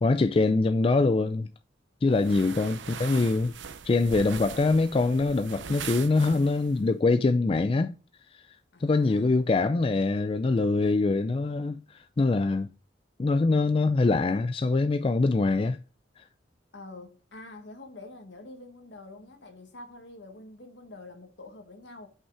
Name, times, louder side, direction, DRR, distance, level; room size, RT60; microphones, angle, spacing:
voice 1, 0.0-1.5 2.0-3.5 3.8-7.9 8.8-12.7 13.2-15.8 16.2-16.3, left 3 dB, 30° left, 0.3 m, -24 dB
voice 2, 2.1-2.7 8.7-9.5 16.7-22.1, left 2 dB, 75° left, 1.5 m, -46 dB
sound 1, 2.2-6.8, right 7 dB, 80° right, 0.6 m, -41 dB
5.8 x 5.5 x 4.6 m
head